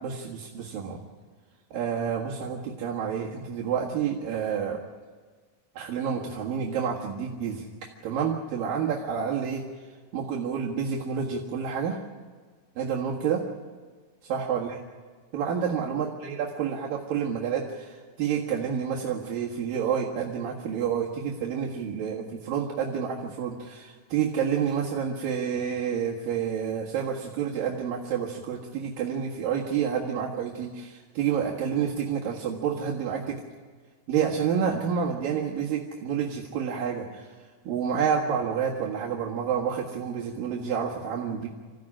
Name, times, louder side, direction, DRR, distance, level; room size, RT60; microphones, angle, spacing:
voice 1, 0.0-1.0 1.7-4.8 5.8-7.7 8.0-9.6 10.1-12.0 12.8-13.4 14.2-14.8 15.3-33.4 34.1-37.3 37.6-41.5, right 7 dB, 75° right, -3 dB, 3.4 m, -29 dB
27.0 x 15.5 x 10.0 m, 1.5 s
omnidirectional pair, 4.1 m